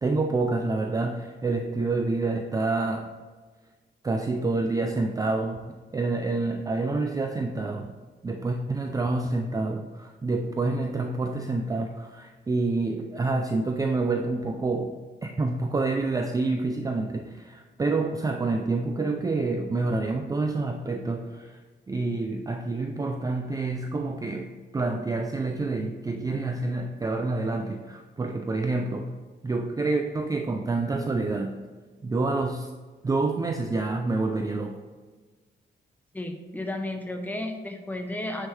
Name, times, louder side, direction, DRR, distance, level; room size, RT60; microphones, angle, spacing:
voice 1, 0.0-3.1 4.0-7.9 8.2-14.9 15.2-21.6 21.9-24.5 24.7-29.1 29.4-31.6 32.0-32.7 33.0-34.8, right 3 dB, 20° right, 4 dB, 0.4 m, -28 dB
voice 2, 36.1-38.5, left 1 dB, 10° left, 4 dB, 0.8 m, -33 dB
9.1 x 5.6 x 3.3 m, 1.4 s
wide cardioid pair, 145°, 20 cm